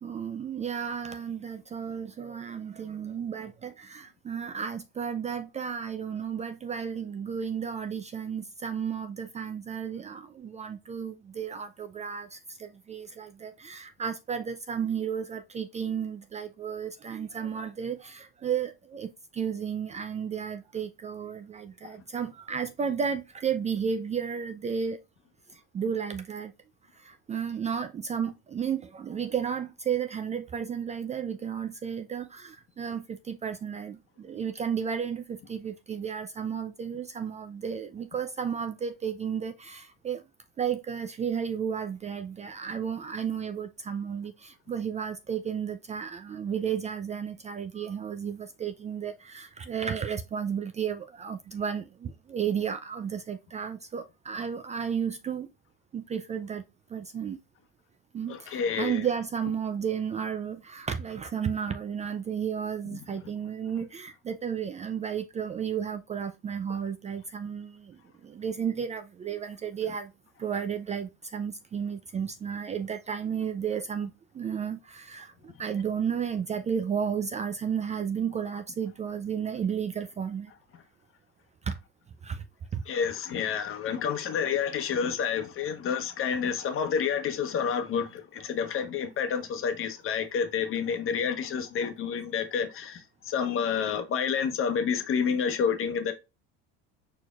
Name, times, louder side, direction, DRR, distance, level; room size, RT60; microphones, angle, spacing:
voice 1, 0.0-25.0 25.5-26.5 27.0-40.2 40.6-55.5 55.9-56.6 56.9-57.4 58.1-70.1 70.4-80.5 81.6-81.8 82.2-82.4 82.7-82.8, right 7 dB, 25° right, 0.4 m, -33 dB
voice 2, 58.3-59.1 82.9-96.1, left 7 dB, 45° left, 1.1 m, -29 dB
4.6 x 4.3 x 2.3 m
supercardioid pair, 105°, 30 cm